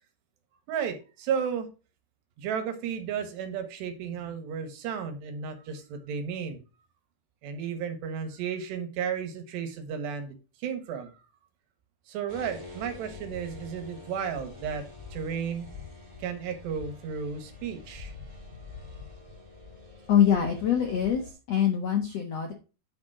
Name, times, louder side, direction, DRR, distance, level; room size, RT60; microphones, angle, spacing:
voice 1, 0.7-1.7 2.4-6.6 7.4-10.4 10.6-11.1 12.1-15.7 16.2-18.1, right 7 dB, 85° right, 7 dB, 3.6 m, -33 dB
sound 1, 12.3-21.3, left 3 dB, 15° right, 2.6 m, -45 dB
voice 2, 20.1-22.5, left 9 dB, 70° left, 3 dB, 1.5 m, -24 dB
9.6 x 5.3 x 4.7 m, 0.33 s
omnidirectional pair, 4.8 m